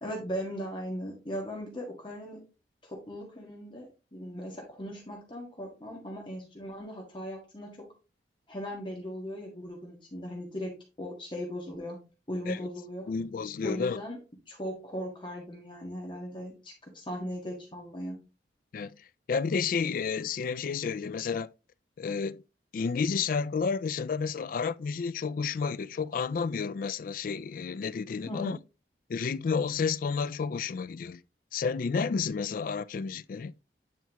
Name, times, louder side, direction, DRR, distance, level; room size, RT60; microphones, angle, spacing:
voice 1, 0.0-2.4 2.8-7.9 8.5-10.7 11.0-12.0 12.3-13.1 13.6-14.2 14.5-18.2 28.3-28.6, equal, 30° left, 1.7 m, -38 dB
voice 2, 13.1-14.0 18.7-19.0 19.3-21.5 22.0-22.4 22.7-28.6 29.1-31.2 31.5-33.5, left 5 dB, 50° left, 0.3 m, -31 dB
9.3 x 4.5 x 3.0 m
head